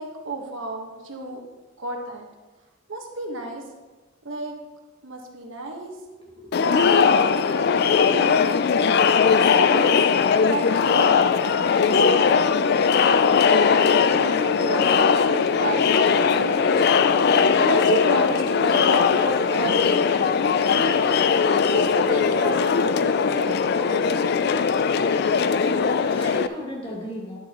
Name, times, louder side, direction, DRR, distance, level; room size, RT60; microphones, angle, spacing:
voice 1, 0.0-1.4 1.8-2.2 2.9-3.6 4.2-4.6 5.0-5.9 6.6-8.5 9.4-10.0 10.5-11.8 12.1-20.3 20.6-21.1 21.3-24.2, right 2 dB, 80° right, 1 dB, 1.4 m, -33 dB
voice 2, 6.2-7.0 25.5-27.4, left 1 dB, 30° left, -3 dB, 2.1 m, -37 dB
Crowd, 6.5-26.5, left 6 dB, 55° left, 0.3 m, -19 dB
10.5 x 8.3 x 3.0 m, 1.2 s
head